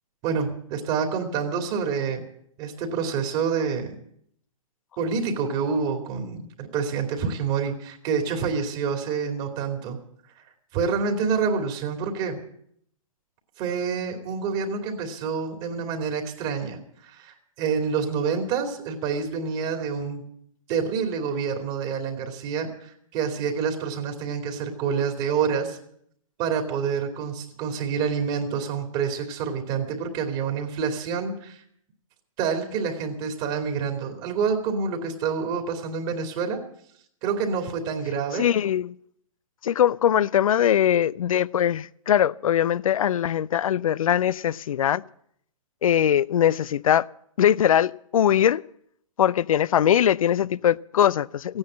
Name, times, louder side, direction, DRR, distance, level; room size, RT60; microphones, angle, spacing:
voice 1, 0.2-2.2 2.6-4.0 5.0-10.0 10.7-12.4 13.6-20.2 20.7-25.8 26.4-31.6 32.4-36.6 37.2-38.5, right 6 dB, 35° right, 2.7 m, -27 dB
voice 2, 38.3-38.9 39.6-45.0 45.8-47.1 47.4-48.6 49.2-51.6, left 10 dB, 75° left, 0.5 m, -21 dB
15.5 x 9.7 x 8.7 m
hypercardioid pair, 135°, 18 cm